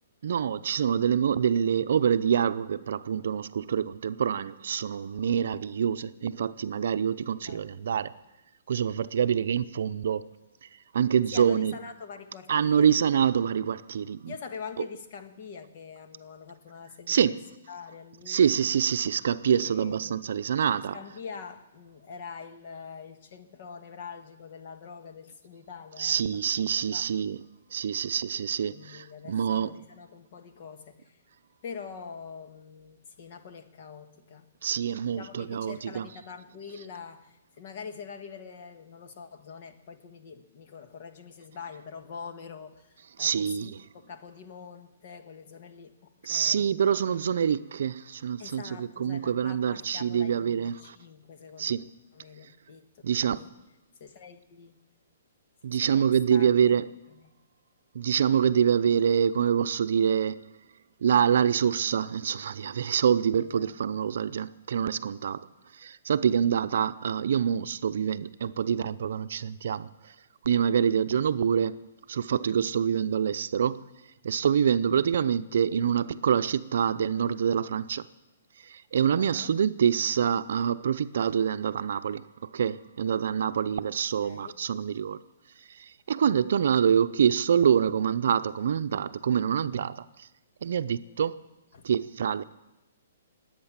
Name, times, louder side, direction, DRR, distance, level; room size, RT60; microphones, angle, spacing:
voice 1, 0.2-8.1 8.7-10.3 10.9-11.7 12.5-14.3 17.1-17.4 18.3-21.0 26.0-27.4 27.7-29.8 34.6-36.1 43.2-43.8 46.2-50.9 51.6-51.9 53.0-53.4 55.6-56.8 57.9-60.4 61.0-65.5 65.7-69.9 70.4-71.8 72.1-73.8 74.2-78.1 78.6-85.2 85.7-90.0 90.6-91.4 91.8-92.4, right 8 dB, 65° right, 0.6 m, -26 dB
voice 2, 11.3-13.0 14.3-17.3 17.7-18.4 19.6-20.2 20.7-26.4 26.7-27.1 28.7-31.2 31.6-34.5 35.1-46.8 48.4-51.8 52.1-53.5 54.0-54.8 55.8-56.7 57.1-57.3 63.5-63.8 64.1-64.2 79.2-79.5 84.2-84.6 91.7-91.9, left 6 dB, 45° left, 1.5 m, -44 dB
21.0 x 8.9 x 7.4 m
hypercardioid pair, 155°, 0 cm